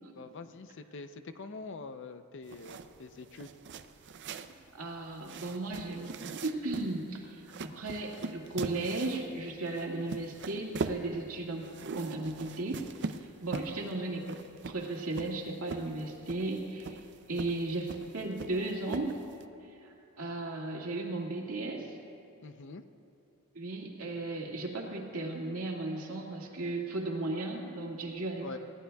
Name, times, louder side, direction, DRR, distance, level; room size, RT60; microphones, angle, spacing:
voice 1, 0.1-3.5 13.5-13.9 22.4-22.9 28.4-28.6, left 3 dB, 60° left, 10 dB, 0.6 m, -45 dB
sound 1, 2.4-19.4, right 4 dB, 55° right, 0.5 m, -42 dB
voice 2, 4.7-6.1 6.4-12.8 13.4-14.2 14.6-17.0 17.3-19.2 19.8-22.0 23.5-28.6, right 2 dB, 80° right, -1 dB, 2.0 m, -35 dB
20.5 x 17.0 x 2.3 m, 2.7 s
head